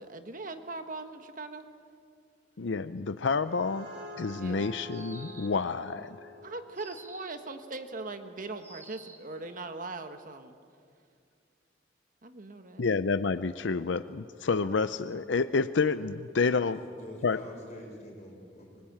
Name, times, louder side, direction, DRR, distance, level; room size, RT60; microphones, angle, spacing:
voice 1, 0.0-1.6 4.4-4.7 6.4-10.6 12.2-12.8, right 3 dB, 45° right, 7 dB, 1.4 m, -40 dB
voice 2, 2.6-3.9 4.2-6.3 12.8-16.8 17.2-17.4, left 4 dB, 75° left, 12 dB, 0.6 m, -29 dB
sound 1, 3.3-8.5, equal, 75° right, 5.2 m, -48 dB
sound 2, 4.9-5.7 6.8-7.5 8.6-9.3, right 3 dB, 15° right, 1.7 m, -50 dB
voice 3, 16.6-18.8, equal, 40° left, -1 dB, 6.7 m, -46 dB
25.0 x 21.0 x 8.8 m, 2.3 s
head